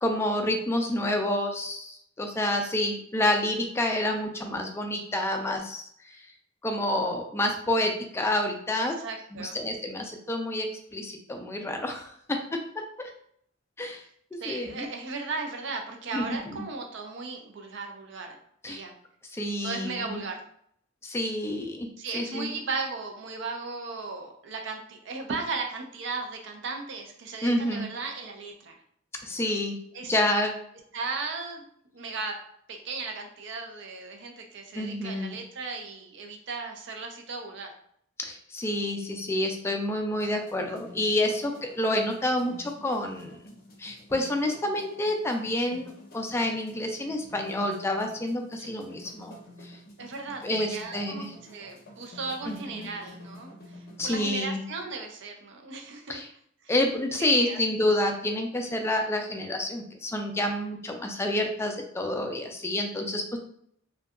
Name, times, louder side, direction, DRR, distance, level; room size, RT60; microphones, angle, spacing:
voice 1, 0.0-5.8 6.1-6.3 6.6-9.0 9.3-10.7 10.9-12.4 13.0-13.1 13.8-14.0 14.3-14.9 16.1-16.6 18.6-18.8 19.3-20.2 21.0-21.9 22.1-22.5 27.4-27.9 29.2-29.8 30.1-30.5 34.7-35.4 38.2-43.4 43.8-49.3 49.6-49.8 50.4-51.3 52.5-52.9 54.0-54.6 56.1-56.3 56.7-63.4, left 1 dB, 15° left, 4 dB, 0.3 m, -28 dB
voice 2, 8.8-9.6 14.4-18.4 18.7-18.9 19.6-20.4 22.0-28.8 29.9-30.1 30.9-31.6 31.9-32.4 32.7-37.7 48.6-48.7 50.0-51.2 51.5-53.8 54.0-56.2 57.1-57.6, right 4 dB, 65° right, 3 dB, 0.5 m, -36 dB
sound 1, 40.1-54.2, equal, 50° left, 0.6 m, -50 dB
2.7 x 2.2 x 2.3 m, 0.67 s
head